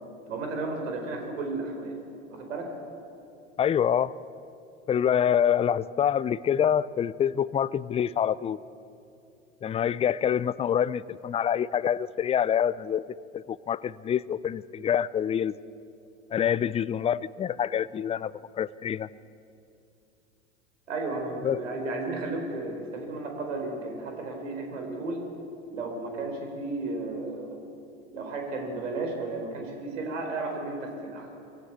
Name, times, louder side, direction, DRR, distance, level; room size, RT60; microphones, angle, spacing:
voice 1, 0.3-1.9 2.3-2.7 20.9-25.2 25.7-27.6 28.1-31.3, right 2 dB, 80° right, 3 dB, 4.4 m, -33 dB
voice 2, 3.6-4.1 4.9-8.6 9.6-13.0 13.3-15.5 16.3-19.1 21.4-21.6, left 9 dB, 15° left, 19 dB, 0.4 m, -26 dB
22.0 x 16.0 x 8.3 m, 2.6 s
hypercardioid pair, 85°, 37 cm